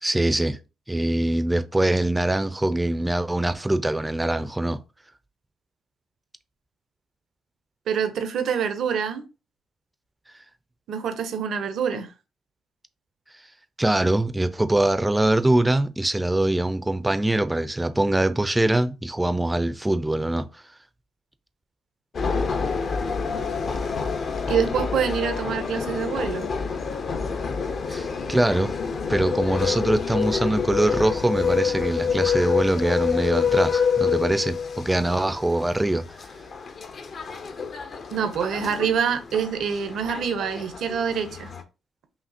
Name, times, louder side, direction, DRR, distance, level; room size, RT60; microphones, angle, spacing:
voice 1, 0.0-0.6 0.9-4.8 13.8-20.5 27.9-28.7 29.1-36.0, right 1 dB, 10° right, 0.4 m, -23 dB
voice 2, 7.9-9.2 10.9-12.1 24.5-26.5 38.1-41.5, right 7 dB, 70° right, 0.7 m, -26 dB
sound 1, 22.1-41.6, left 6 dB, 50° left, 0.6 m, -27 dB
5.1 x 2.8 x 2.6 m
cardioid pair, 90°, 0 cm